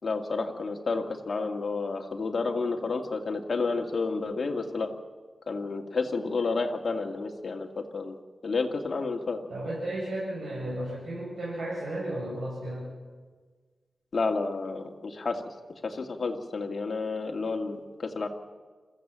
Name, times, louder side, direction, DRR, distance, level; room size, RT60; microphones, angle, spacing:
voice 1, 0.0-4.9 5.5-8.2 8.4-9.4 14.1-15.4 15.8-18.3, left 4 dB, 50° left, 2 dB, 2.1 m, -30 dB
voice 2, 9.5-12.9, right 1 dB, 70° right, -6 dB, 7.5 m, -34 dB
27.0 x 15.0 x 7.6 m, 1.5 s
wide cardioid pair, 120°, 0 cm